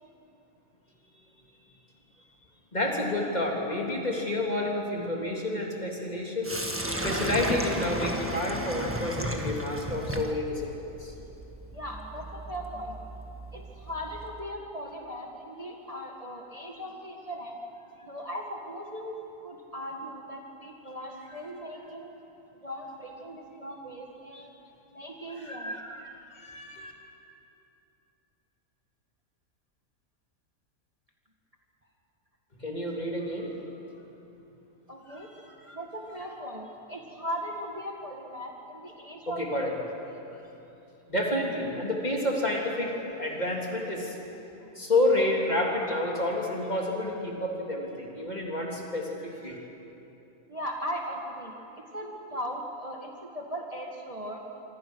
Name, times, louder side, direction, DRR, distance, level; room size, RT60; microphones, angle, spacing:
voice 1, 2.7-6.5 7.0-11.1 24.3-24.5 25.3-26.1 26.3-26.9 32.6-33.5 35.1-35.2 35.6-35.8 39.3-39.9 41.1-44.2 44.7-49.6, left 1 dB, 30° left, -1 dB, 3.3 m, -30 dB
Sink (filling or washing), 6.4-14.4, right 1 dB, 10° right, 1.5 m, -34 dB
voice 2, 11.7-13.0 13.5-17.6 18.0-22.1 22.5-24.5 24.9-25.7 34.9-35.3 35.7-39.6 50.5-54.4, equal, 25° right, 0 dB, 1.9 m, -38 dB
26.0 x 25.0 x 6.3 m, 3.0 s
omnidirectional pair, 1.5 m